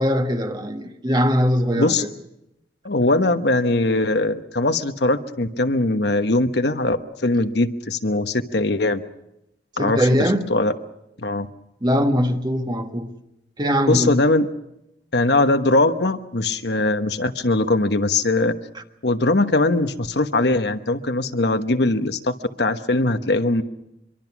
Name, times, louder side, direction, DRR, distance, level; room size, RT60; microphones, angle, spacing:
voice 1, 0.0-2.1 9.8-10.5 11.8-13.1 13.6-14.2, equal, 25° right, 1.5 m, -21 dB
voice 2, 2.8-9.0 9.8-10.7 11.2-11.5 13.9-14.5 15.1-18.5 19.0-22.3 22.6-23.6, left 2 dB, 65° left, 1.2 m, -21 dB
25.0 x 23.5 x 6.1 m
head